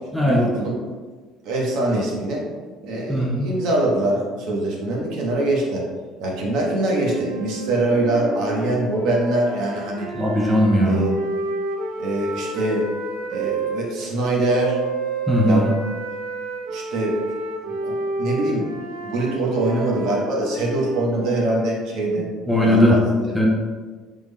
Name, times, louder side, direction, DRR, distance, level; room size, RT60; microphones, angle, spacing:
voice 1, 0.2-0.8 1.4-2.4 2.8-5.8 6.2-10.1 10.8-11.2 12.0-12.9 13.3-14.8 15.4-15.7 16.7-17.2 17.7-18.6 19.0-22.3 22.6-23.1, right 2 dB, 65° right, -2 dB, 0.8 m, -23 dB
voice 2, 3.1-3.4 10.1-11.0 15.3-15.7 22.5-23.0 23.3-23.5, left 1 dB, ahead, -3 dB, 0.4 m, -18 dB
sound 1, 6.8-13.8 14.5-21.7, right 3 dB, 90° right, 0.5 m, -30 dB
3.5 x 2.1 x 3.3 m, 1.4 s
cardioid pair, 155°, 0 cm